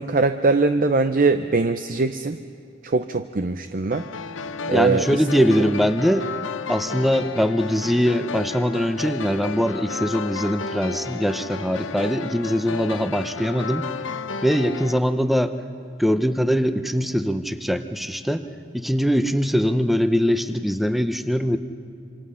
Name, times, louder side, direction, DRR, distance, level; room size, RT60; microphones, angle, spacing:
voice 1, 0.0-2.4 2.8-4.1 4.7-5.2, right 3 dB, 45° right, 9 dB, 0.6 m, -21 dB
sound 1, 3.9-15.0, left 4 dB, 75° left, 0.8 m, -32 dB
voice 2, 4.7-6.3 6.7-13.9 14.4-15.5 16.0-18.5 18.7-21.6, equal, ahead, 9 dB, 0.7 m, -22 dB
26.5 x 26.5 x 5.7 m, 2.4 s
head